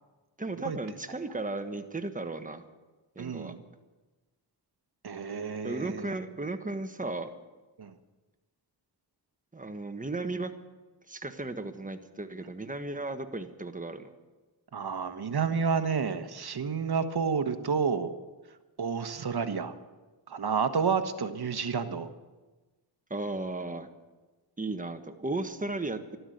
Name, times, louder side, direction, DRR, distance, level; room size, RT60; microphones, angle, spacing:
voice 1, 0.4-2.6 3.1-3.5 5.6-7.3 9.5-10.5 11.1-14.1 23.1-23.9 24.6-26.2, right 2 dB, 20° right, 7 dB, 1.4 m, -35 dB
voice 2, 3.2-3.6 5.0-6.1 7.8-7.9 14.7-18.1 18.8-19.7 20.3-22.1, right 6 dB, 55° right, 9 dB, 1.3 m, -30 dB
12.5 x 12.5 x 8.0 m, 1.2 s
cardioid pair, 55°, 44 cm